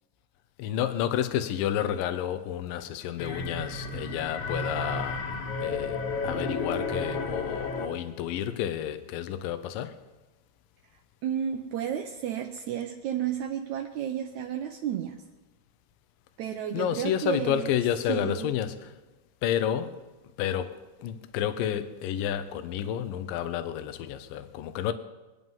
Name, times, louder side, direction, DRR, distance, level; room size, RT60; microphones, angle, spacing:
voice 1, 0.6-10.0 16.7-19.0 19.4-20.0 20.4-24.9, left 10 dB, 70° left, 2.3 m, -30 dB
sound 1, 3.2-8.1, left 3 dB, 55° left, 2.6 m, -32 dB
voice 2, 11.2-15.2 16.4-17.7 18.1-18.5, right 9 dB, 90° right, 1.6 m, -32 dB
25.0 x 9.7 x 5.6 m
omnidirectional pair, 4.6 m